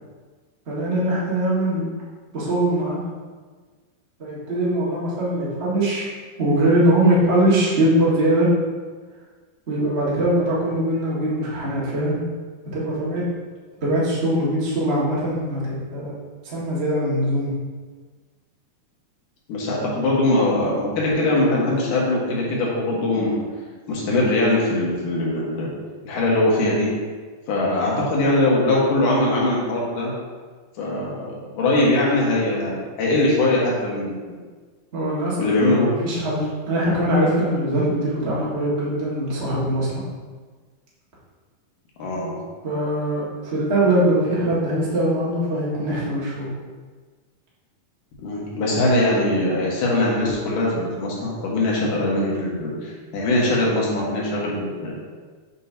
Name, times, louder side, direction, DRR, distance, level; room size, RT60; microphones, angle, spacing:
voice 1, 0.7-1.8 2.3-3.0 4.2-6.1 6.4-8.5 9.7-12.2 12.7-13.2 13.8-16.1 16.4-17.5 34.9-40.0 42.6-46.5, right 1 dB, 30° right, -7 dB, 1.2 m, -22 dB
voice 2, 19.5-23.5 23.9-25.7 26.0-26.9 27.5-30.2 30.8-34.4 35.4-35.9 42.0-42.4 48.2-54.9, left 1 dB, 85° left, -4 dB, 3.0 m, -21 dB
7.1 x 6.2 x 2.8 m, 1.5 s
omnidirectional pair, 3.6 m